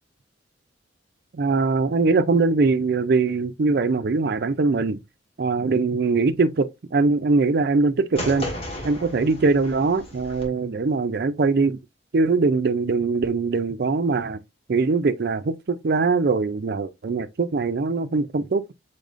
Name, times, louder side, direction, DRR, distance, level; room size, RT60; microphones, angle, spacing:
voice 1, 1.3-5.0 5.4-8.5 8.8-11.8 12.1-14.4 14.7-18.7, right 3 dB, 55° right, 0.4 m, -22 dB
sound 1, 8.2-10.4, left 1 dB, 30° left, 1.4 m, -34 dB
5.2 x 4.0 x 2.5 m
head